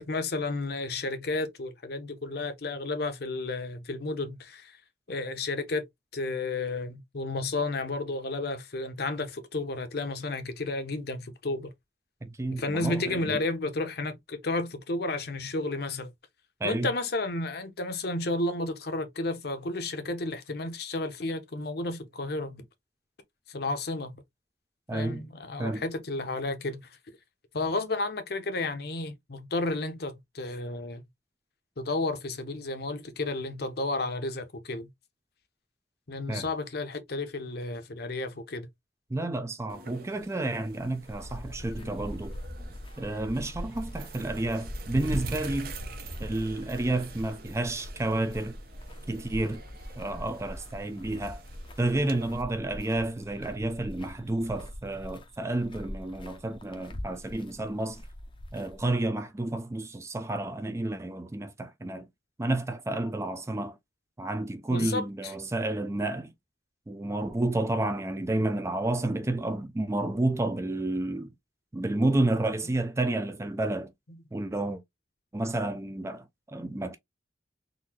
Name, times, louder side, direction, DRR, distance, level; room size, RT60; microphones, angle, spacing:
voice 1, 0.0-4.8 5.1-5.9 6.1-11.7 12.5-16.1 16.6-22.7 23.5-24.2 24.9-27.0 27.5-31.0 31.8-34.9 36.1-38.7 41.8-41.9 64.7-65.3 74.1-74.2, left 2 dB, 60° left, 0.8 m, -32 dB
voice 2, 12.2-13.4 16.6-16.9 24.9-25.2 25.6-25.8 36.3-36.5 39.1-42.3 43.0-45.7 46.2-48.6 49.1-49.6 50.0-51.4 51.8-58.0 58.5-62.1 62.4-63.8 64.2-66.3 66.9-71.3 71.7-73.9 74.3-74.8 75.3-77.0, right 2 dB, 15° right, 0.4 m, -30 dB
sound 1, 39.7-52.4, right 2 dB, 55° right, 0.7 m, -43 dB
sound 2, 41.0-58.8, equal, 30° left, 0.6 m, -43 dB
3.9 x 2.6 x 2.8 m
head